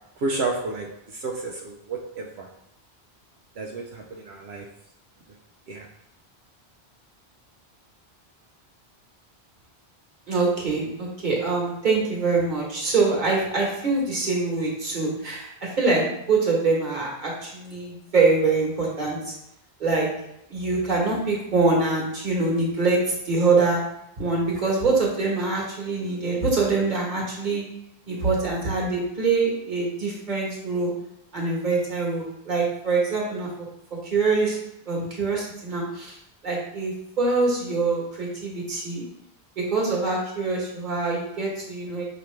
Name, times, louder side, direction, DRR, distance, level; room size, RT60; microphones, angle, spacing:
voice 1, 0.2-0.9 1.1-2.5 3.6-4.6 5.7-5.9, right 3 dB, 85° right, 0 dB, 0.9 m, -31 dB
voice 2, 10.3-19.3 19.8-20.1 20.5-23.8 24.2-27.6 28.1-30.9 31.3-33.7 34.0-34.6 34.9-36.2 36.4-39.0 39.6-42.0, right 3 dB, 50° right, -3 dB, 1.4 m, -24 dB
5.6 x 3.0 x 3.2 m, 0.78 s
omnidirectional pair, 1.1 m